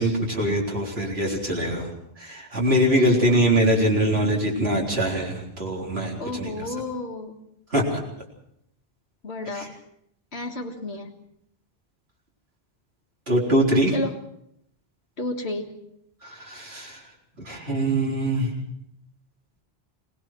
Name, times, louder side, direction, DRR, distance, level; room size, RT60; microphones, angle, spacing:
voice 1, 0.0-1.9 2.2-6.7 7.7-8.0 9.5-9.7 13.3-14.0 16.2-17.0 17.4-18.5, right 1 dB, 70° right, -2 dB, 4.2 m, -23 dB
voice 2, 3.0-3.4 6.2-7.6 9.2-9.8 10.3-11.1 13.9-14.2 15.2-15.8, left 2 dB, 75° left, 0 dB, 2.0 m, -32 dB
23.5 x 19.5 x 6.1 m, 0.76 s
omnidirectional pair, 1.1 m